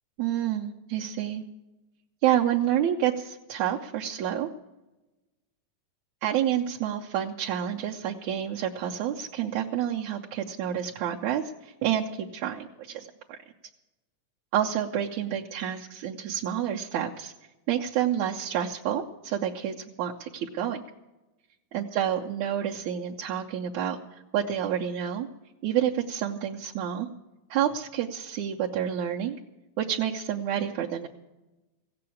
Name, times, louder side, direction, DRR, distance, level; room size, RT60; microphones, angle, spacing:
voice 1, 0.2-1.4 2.2-4.5 6.2-13.4 14.5-17.3 17.7-20.8 21.7-25.3 25.6-27.1 27.5-29.4 29.8-31.1, right 10 dB, 75° right, -1 dB, 1.7 m, -29 dB
16.5 x 7.7 x 8.4 m, 1.1 s
omnidirectional pair, 4.0 m